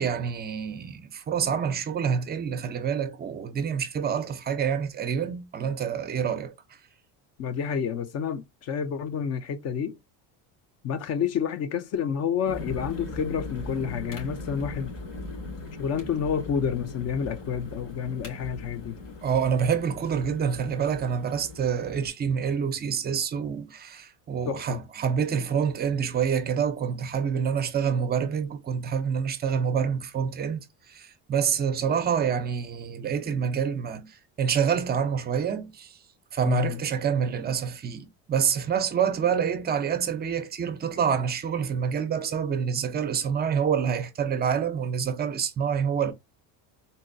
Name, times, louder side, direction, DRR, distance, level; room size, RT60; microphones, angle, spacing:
voice 1, 0.0-6.5 19.2-34.1 34.4-36.0 36.3-46.1, right 7 dB, 25° right, 0.4 m, -27 dB
voice 2, 7.4-10.0 10.8-14.9 15.8-19.0 24.5-24.8 36.4-36.8, left 7 dB, 40° left, 0.4 m, -29 dB
sound 1, 12.5-22.1, left 2 dB, 85° left, 2.2 m, -39 dB
4.0 x 2.2 x 2.5 m
cardioid pair, 135°, 43 cm